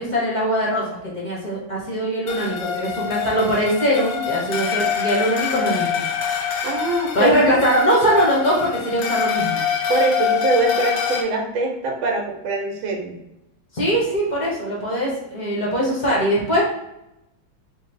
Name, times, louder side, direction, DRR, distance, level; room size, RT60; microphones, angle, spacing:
voice 1, 0.0-6.0 7.1-9.6 13.7-16.6, equal, 50° left, -5 dB, 0.5 m, -21 dB
sound 1, 2.3-11.2, left 8 dB, 90° left, 0.8 m, -25 dB
voice 2, 6.6-7.4 9.9-13.2, right 3 dB, 80° right, 1 dB, 1.6 m, -23 dB
3.9 x 2.0 x 4.2 m, 0.87 s
omnidirectional pair, 2.2 m